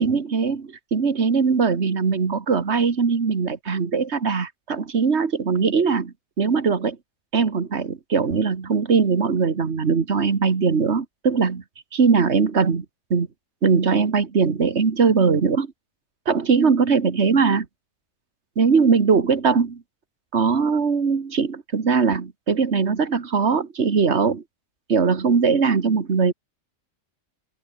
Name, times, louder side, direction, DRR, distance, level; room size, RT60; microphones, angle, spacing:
voice 1, 0.0-7.0 7.3-11.6 11.9-12.9 13.1-13.3 13.6-15.7 16.3-17.7 18.6-19.8 20.3-24.4 24.9-26.3, right 5 dB, 50° right, 2.0 m, -20 dB
open air
omnidirectional pair, 1.5 m